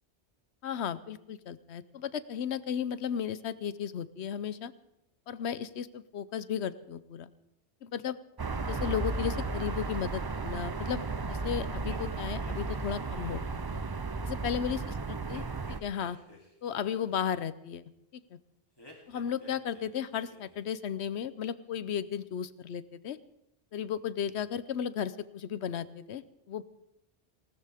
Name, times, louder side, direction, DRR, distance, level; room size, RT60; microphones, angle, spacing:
voice 1, 0.6-4.7 5.3-7.3 7.8-8.2 8.7-11.0 11.3-13.4 13.7-13.8 14.2-16.2 16.6-17.8 18.3-18.4 19.1-23.2 23.7-26.6, left 8 dB, 85° left, 15 dB, 1.0 m, -35 dB
sound 1, 8.4-15.8, right 3 dB, 30° right, 0.4 m, -34 dB
sound 2, 11.8-13.6 15.3-17.1 18.8-19.9 20.1-20.7, left 1 dB, 20° left, 3.1 m, -53 dB
19.5 x 18.5 x 3.5 m, 0.82 s
omnidirectional pair, 1.1 m